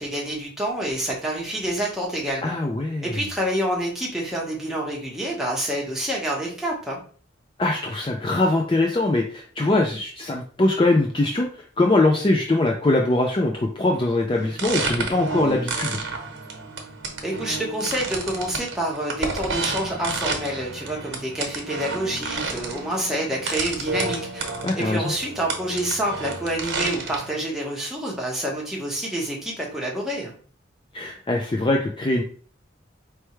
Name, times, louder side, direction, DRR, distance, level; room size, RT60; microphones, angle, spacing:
voice 1, 0.0-2.5 3.0-7.0 17.2-24.5 24.8-30.3, right 1 dB, ahead, -3 dB, 1.1 m, -27 dB
voice 2, 2.4-3.1 7.6-11.5 11.8-16.0 24.6-25.0 30.9-32.2, left 2 dB, 25° left, 2 dB, 0.4 m, -22 dB
sound 1, 14.4-27.3, right 3 dB, 85° right, 1.0 m, -31 dB
4.4 x 3.3 x 3.1 m, 0.43 s
head